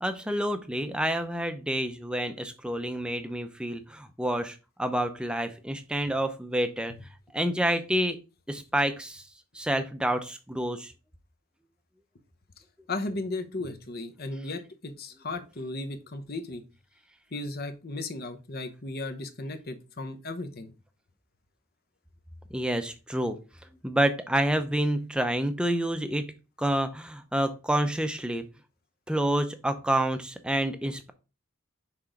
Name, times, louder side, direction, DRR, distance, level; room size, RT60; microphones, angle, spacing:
voice 1, 0.0-6.9 7.3-8.2 8.5-9.2 9.5-10.9 22.5-23.4 23.8-26.3 26.6-28.4 29.1-31.1, right 1 dB, 5° right, 8 dB, 0.6 m, -28 dB
voice 2, 12.9-16.6 17.3-20.7, left 2 dB, 45° left, 7 dB, 0.9 m, -35 dB
6.0 x 3.9 x 4.5 m, 0.31 s
head